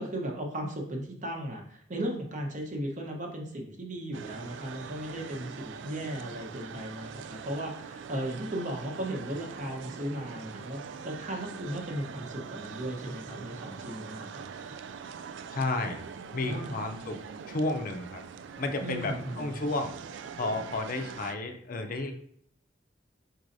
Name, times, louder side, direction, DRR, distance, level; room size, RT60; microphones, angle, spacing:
voice 1, 0.0-14.8 16.5-17.1 18.8-19.5, right 1 dB, 45° right, 1 dB, 0.9 m, -36 dB
sound 1, 4.1-21.3, right 6 dB, 80° right, 0.3 m, -43 dB
voice 2, 15.5-16.0 16.3-17.2 17.5-18.2 18.6-19.9 20.4-22.1, left 2 dB, 50° left, 5 dB, 0.5 m, -32 dB
4.7 x 4.1 x 2.6 m, 0.64 s
head